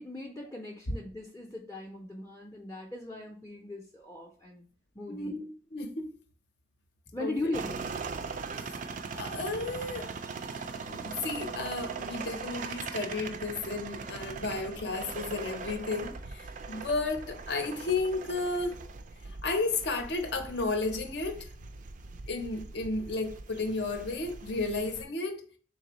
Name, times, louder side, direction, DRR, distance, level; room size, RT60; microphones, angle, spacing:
voice 1, 0.0-4.6 4.9-5.4 7.1-7.9, left 2 dB, 15° left, 0.5 m, -38 dB
voice 2, 5.1-6.1 7.2-7.4 9.2-10.1 10.5-18.8 19.4-21.5 22.3-25.4, left 3 dB, 60° left, 0.6 m, -33 dB
sound 1, 7.5-25.0, right 5 dB, 45° right, 0.3 m, -40 dB
4.0 x 3.3 x 2.9 m
head